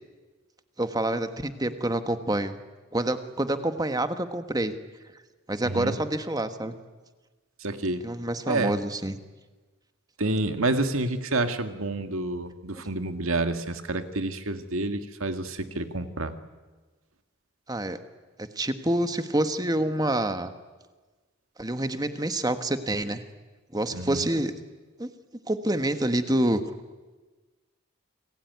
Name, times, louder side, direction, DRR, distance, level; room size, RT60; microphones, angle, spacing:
voice 1, 0.8-2.6 2.9-4.7 5.5-6.7 8.0-9.1 17.7-18.0 18.4-20.5 21.6-23.2 23.7-24.5 25.0-25.1 25.5-26.6, right 1 dB, 20° right, 9 dB, 1.5 m, -27 dB
voice 2, 7.6-8.0 8.5-8.8 10.2-16.3 23.9-24.3, right 2 dB, 90° right, 8 dB, 2.1 m, -28 dB
29.0 x 21.0 x 9.5 m, 1.3 s
head